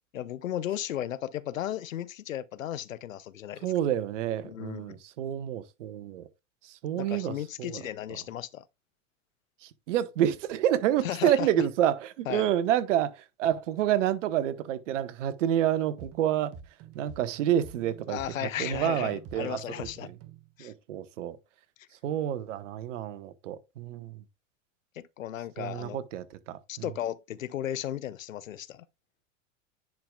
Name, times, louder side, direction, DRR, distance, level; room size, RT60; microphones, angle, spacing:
voice 1, 0.1-3.7 4.4-5.0 7.0-8.6 11.0-11.5 12.3-12.5 18.1-20.1 20.6-20.7 25.0-26.0 26.7-28.9, left 11 dB, 85° left, 0.7 m, -35 dB
voice 2, 3.6-6.3 6.6-7.8 9.6-16.5 16.9-20.1 20.6-21.4 22.0-24.2 25.6-26.6, right 11 dB, 70° right, 1.1 m, -29 dB
sound 1, 16.0-20.5, right 7 dB, 35° right, 1.2 m, -48 dB
10.5 x 4.8 x 2.3 m
hypercardioid pair, 95°, 39 cm